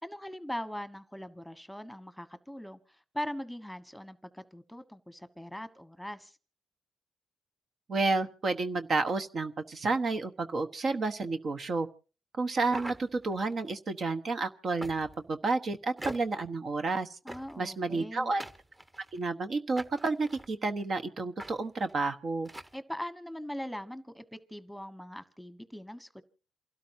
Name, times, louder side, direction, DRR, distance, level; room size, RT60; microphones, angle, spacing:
voice 1, 0.0-6.4 17.2-18.3 22.7-26.2, equal, ahead, 1.3 m, -41 dB
voice 2, 7.9-11.9 12.4-17.2 17.6-18.4 19.1-22.5, right 3 dB, 55° right, 1.1 m, -30 dB
sound 1, 12.7-13.5 14.8-15.3 16.0-16.5 17.3-17.7 18.4-19.2 19.8-20.5 21.4-21.5 21.8-21.9 22.4-22.8, right 1 dB, 20° right, 1.3 m, -43 dB
28.0 x 12.5 x 2.7 m
cardioid pair, 65°, 0 cm